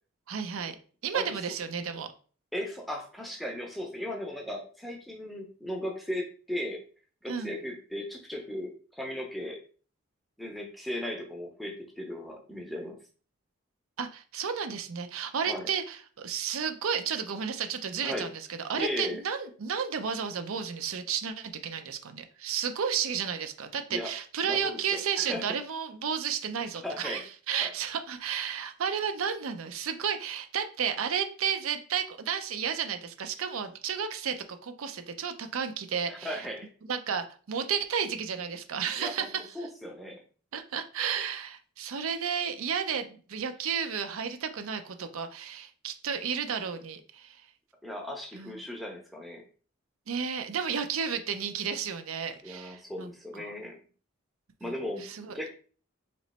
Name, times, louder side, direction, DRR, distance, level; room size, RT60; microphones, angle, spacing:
voice 1, 0.3-0.8 1.0-2.1 7.3-7.6 14.0-18.4 18.7-36.4 36.9-39.4 40.5-47.4 48.3-48.6 50.1-53.5 54.6-54.7 55.0-55.4, right 7 dB, 80° right, 8 dB, 0.5 m, -32 dB
voice 2, 2.5-6.8 7.2-9.6 10.4-13.0 15.5-15.7 18.0-18.3 18.8-19.2 23.9-24.1 24.4-25.4 26.8-27.2 27.6-27.7 36.1-36.7 39.0-40.2 47.8-49.4 52.4-53.8 54.6-55.5, left 1 dB, ahead, 1 dB, 0.6 m, -37 dB
3.0 x 2.9 x 4.1 m, 0.41 s
head